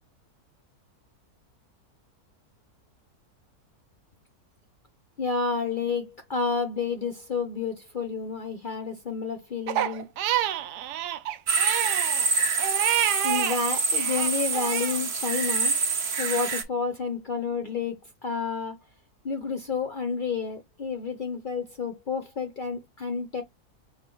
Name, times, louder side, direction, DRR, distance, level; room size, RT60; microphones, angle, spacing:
voice 1, 5.2-10.0 13.2-15.7 16.2-18.7 19.2-23.4, left 5 dB, 60° left, 0.5 m, -30 dB
Crying sobbing, 9.7-13.6 13.9-15.0, right 11 dB, 90° right, 1.2 m, -28 dB
sound 1, 11.5-16.6, right 4 dB, 50° right, 1.1 m, -26 dB
5.2 x 2.3 x 3.8 m
omnidirectional pair, 1.7 m